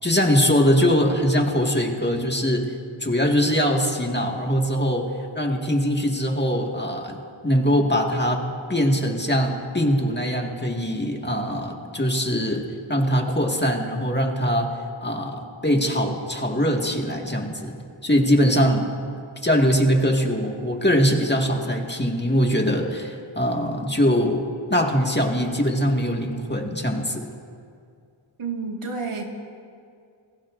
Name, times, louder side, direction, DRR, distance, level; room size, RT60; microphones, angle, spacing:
voice 1, 0.0-2.7 3.0-14.7 15.0-17.7 18.0-18.9 19.4-27.3, equal, 20° left, 1 dB, 1.8 m, -22 dB
voice 2, 28.4-29.2, right 4 dB, 85° right, 0 dB, 2.0 m, -29 dB
27.0 x 17.5 x 2.6 m, 2.3 s
wide cardioid pair, 50°, 49 cm